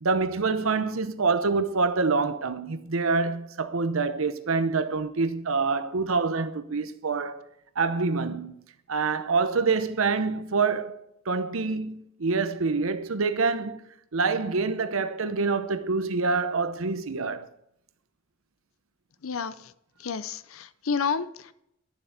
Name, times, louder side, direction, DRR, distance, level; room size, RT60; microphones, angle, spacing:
voice 1, 0.0-7.5 7.8-8.5 8.9-10.9 11.3-13.8 14.1-17.5, right 4 dB, 75° right, 0.8 m, -26 dB
voice 2, 19.2-19.7 20.0-21.5, left 5 dB, 80° left, 0.6 m, -30 dB
12.0 x 7.4 x 8.1 m
head